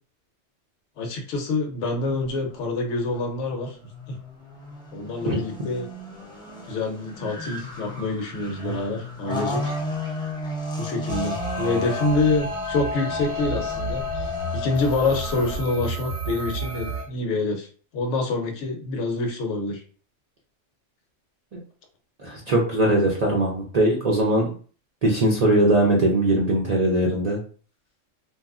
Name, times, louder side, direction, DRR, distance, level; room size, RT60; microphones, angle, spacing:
voice 1, 1.0-3.8 4.1-4.2 4.9-5.9 6.7-9.7 10.8-17.7 17.9-19.8, left 3 dB, 70° left, 3 dB, 0.9 m, -26 dB
sound 1, 2.1-15.6, left 1 dB, 5° left, 0.3 m, -35 dB
sound 2, 11.1-17.0, left 1 dB, 65° right, 0.8 m, -30 dB
voice 2, 22.2-24.5 25.0-27.4, right 1 dB, 50° right, -4 dB, 0.5 m, -20 dB
2.9 x 2.3 x 2.4 m, 0.41 s
omnidirectional pair, 1.3 m